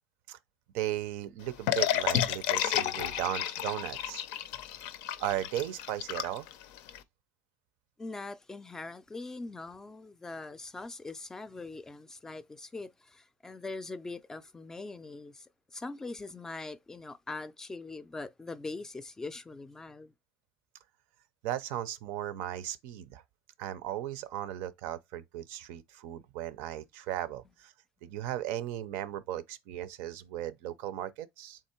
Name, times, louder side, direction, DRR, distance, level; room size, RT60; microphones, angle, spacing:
voice 1, 0.7-4.2 5.2-6.5 21.4-23.2 23.6-27.7 28.0-31.6, right 12 dB, 75° right, 0.5 m, -36 dB
sound 1, 1.7-7.0, left 11 dB, 80° left, 0.5 m, -31 dB
voice 2, 8.0-20.1, left 3 dB, 15° left, 0.4 m, -42 dB
3.7 x 2.9 x 4.3 m
cardioid pair, 125°, 4 cm